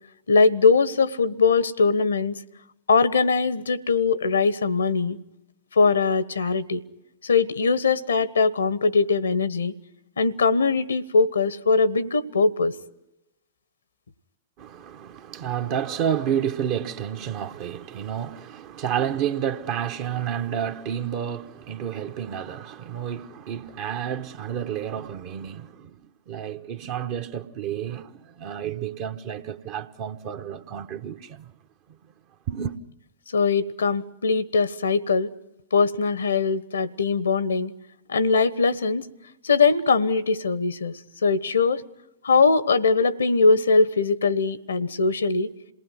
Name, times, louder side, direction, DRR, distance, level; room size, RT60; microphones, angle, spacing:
voice 1, 0.3-2.4 2.9-5.2 5.8-6.8 7.2-9.7 10.2-12.8 33.3-35.3 35.7-37.7 38.1-39.1 39.4-40.9 41.2-41.8 42.2-45.5, left 4 dB, 75° left, 1.1 m, -21 dB
voice 2, 14.6-26.0 26.3-31.5 32.5-32.7, right 9 dB, 45° right, 1.1 m, -30 dB
27.5 x 19.0 x 9.5 m
figure-of-eight pair, 100°, 0 cm